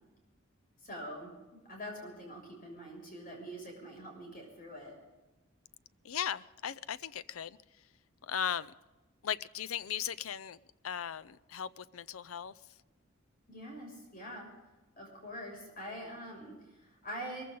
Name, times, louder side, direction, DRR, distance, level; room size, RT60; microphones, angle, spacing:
voice 1, 0.8-1.3 1.7-4.9 13.5-14.5 15.0-17.4, equal, 45° left, 6.7 m, -44 dB
voice 2, 6.0-7.6 8.3-8.7 9.2-10.6 10.8-12.5, left 9 dB, 85° left, 0.5 m, -37 dB
22.5 x 15.0 x 4.0 m
head